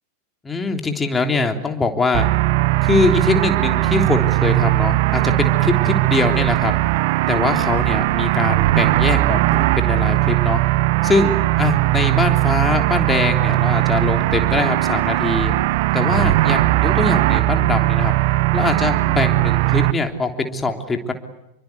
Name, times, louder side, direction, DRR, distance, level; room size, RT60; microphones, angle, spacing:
voice 1, 0.4-2.3 2.8-6.7 7.3-10.6 11.0-15.5 15.9-18.1 18.5-21.1, left 3 dB, 15° left, 4 dB, 3.3 m, -22 dB
sound 1, 2.1-19.9, right 20 dB, 50° right, 1.0 m, -18 dB
29.0 x 23.5 x 8.3 m, 0.93 s
figure-of-eight pair, 90°, 0 cm